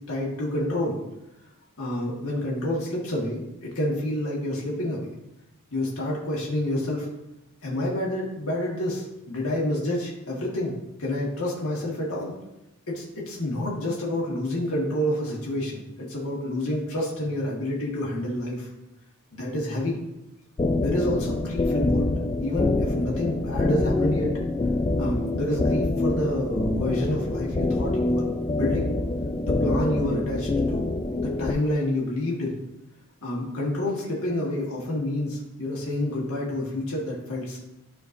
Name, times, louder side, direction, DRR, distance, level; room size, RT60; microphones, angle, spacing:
voice 1, 0.1-1.0 1.8-5.1 5.7-7.1 7.6-10.7 11.0-12.3 12.9-18.7 19.3-20.0 20.8-22.1 22.4-24.3 25.0-28.9 29.4-30.8 31.2-32.6 33.2-37.6, left 1 dB, 65° left, -4 dB, 1.7 m, -28 dB
sound 1, 20.6-31.5, left 2 dB, 20° left, 0.4 m, -26 dB
12.0 x 4.4 x 2.6 m, 0.91 s
head